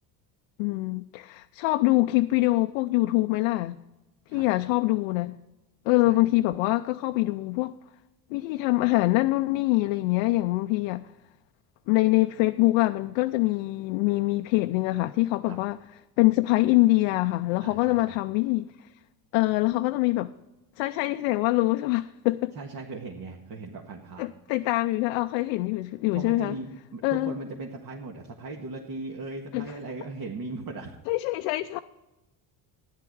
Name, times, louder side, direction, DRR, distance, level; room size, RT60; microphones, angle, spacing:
voice 1, 0.6-3.8 4.3-5.4 5.9-7.7 8.3-11.0 11.9-15.8 16.2-18.7 19.3-20.3 20.8-22.5 24.2-26.5 27.0-27.3 29.5-29.6 31.1-31.8, left 19 dB, 75° left, 0.6 m, -24 dB
voice 2, 17.6-18.2 22.5-24.3 26.1-31.0, right 3 dB, 45° right, 1.7 m, -38 dB
13.0 x 10.5 x 4.7 m
supercardioid pair, 95°, 46 cm